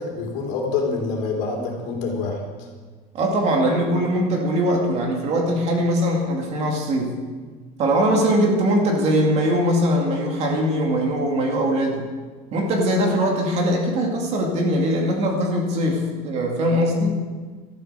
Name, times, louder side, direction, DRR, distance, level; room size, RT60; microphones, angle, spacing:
voice 1, 0.0-2.7, left 4 dB, 60° left, 0 dB, 3.5 m, -26 dB
voice 2, 3.1-7.1 7.8-12.0 12.5-17.2, equal, 35° right, 1 dB, 2.3 m, -21 dB
13.0 x 11.0 x 6.8 m, 1.4 s
cardioid pair, 175°, 19 cm